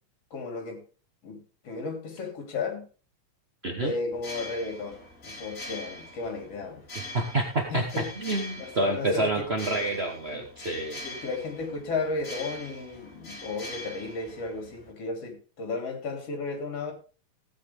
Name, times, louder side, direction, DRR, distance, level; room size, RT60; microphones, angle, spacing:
voice 1, 0.3-0.8 1.2-2.9 3.8-6.8 7.7-8.1 8.6-9.5 10.3-10.5 11.0-16.9, left 3 dB, 55° left, 4.0 m, -34 dB
sound 1, 4.1-14.9, left 1 dB, 25° left, 3.2 m, -43 dB
voice 2, 7.1-11.0, right 2 dB, 45° right, 0.8 m, -28 dB
17.0 x 8.6 x 3.6 m
omnidirectional pair, 3.4 m